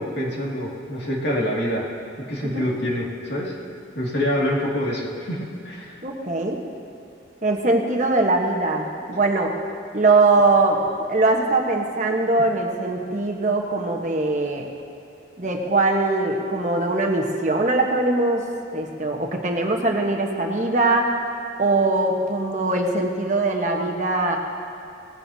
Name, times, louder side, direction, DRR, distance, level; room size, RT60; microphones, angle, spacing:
voice 1, 0.0-1.9 2.3-3.6 3.9-6.0, equal, 65° left, -4 dB, 2.3 m, -26 dB
voice 2, 6.0-6.6 7.4-9.5 9.9-10.8 11.1-14.7 15.4-18.4 18.7-21.1 21.6-24.4, right 2 dB, 40° right, 1 dB, 1.2 m, -21 dB
19.0 x 15.5 x 2.8 m, 2.6 s
head